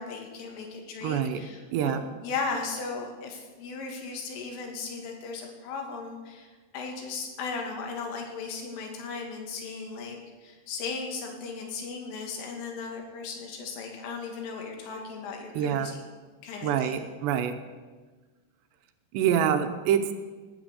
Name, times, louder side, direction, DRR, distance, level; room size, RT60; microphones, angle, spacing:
voice 1, 0.0-15.9 16.4-17.0, left 4 dB, 85° left, 2 dB, 5.0 m, -36 dB
voice 2, 1.0-1.4 1.7-2.0 15.5-15.9 16.6-17.5 19.1-20.1, right 9 dB, 75° right, 8 dB, 2.9 m, -26 dB
19.0 x 9.4 x 8.0 m, 1.4 s
omnidirectional pair, 5.5 m